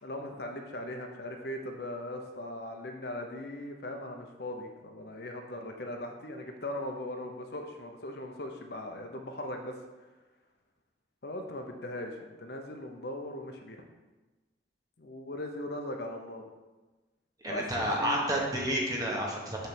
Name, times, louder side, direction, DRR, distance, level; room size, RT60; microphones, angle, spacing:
voice 1, 0.0-9.7 11.2-13.8 15.0-16.5 17.5-18.2, left 1 dB, 60° left, 3 dB, 0.7 m, -39 dB
voice 2, 17.4-19.7, right 1 dB, 20° right, -2 dB, 1.2 m, -30 dB
6.9 x 3.4 x 6.0 m, 1.2 s
head